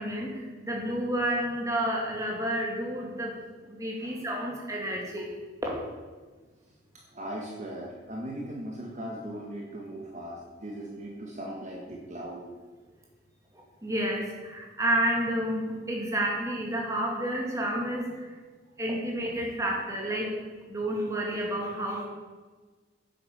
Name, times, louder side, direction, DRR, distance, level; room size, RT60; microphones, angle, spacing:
voice 1, 0.0-5.3 5.6-5.7 13.8-18.3 18.8-20.4 20.7-22.1, right 1 dB, 15° right, -1 dB, 2.4 m, -30 dB
voice 2, 7.1-12.4, right 1 dB, 40° right, -2 dB, 1.7 m, -38 dB
10.0 x 8.6 x 7.1 m, 1.4 s
head